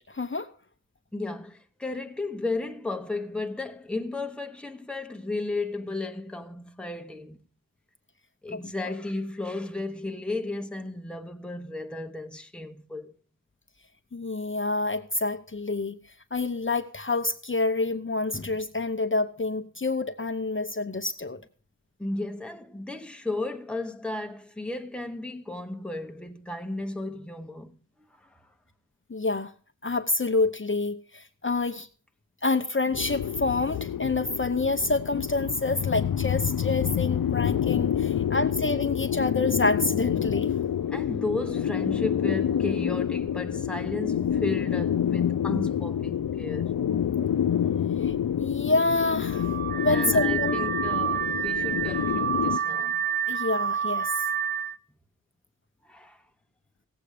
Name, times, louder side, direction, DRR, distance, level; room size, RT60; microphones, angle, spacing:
voice 1, 0.1-0.5 8.5-8.9 14.1-16.0 16.3-21.4 29.1-29.5 29.8-31.9 32.4-40.6 48.0-49.5 49.8-50.6 53.3-54.2, left 3 dB, 35° left, 0.8 m, -27 dB
voice 2, 1.1-7.4 8.4-13.1 22.0-27.8 28.2-28.5 38.1-38.4 40.9-46.7 49.9-53.2 55.8-56.2, left 2 dB, 5° left, 1.0 m, -34 dB
sound 1, 32.9-52.6, left 9 dB, 75° left, 0.5 m, -28 dB
Car / Alarm, 49.3-54.8, right 8 dB, 30° right, 0.7 m, -28 dB
16.5 x 7.9 x 4.9 m
wide cardioid pair, 65°, 34 cm